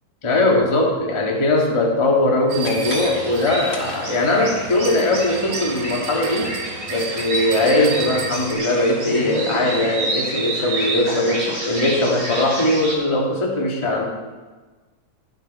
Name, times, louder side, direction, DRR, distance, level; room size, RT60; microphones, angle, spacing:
voice 1, 0.2-6.6 6.9-14.0, left 1 dB, 20° left, -1 dB, 0.7 m, -20 dB
sound 1, 2.5-12.9, right 1 dB, 30° right, 5.6 m, -29 dB
sound 2, 2.5-8.5, right 6 dB, 80° right, 2.6 m, -33 dB
sound 3, 2.6-4.5, left 4 dB, 65° left, 2.8 m, -38 dB
20.5 x 7.1 x 4.2 m, 1.3 s
omnidirectional pair, 3.6 m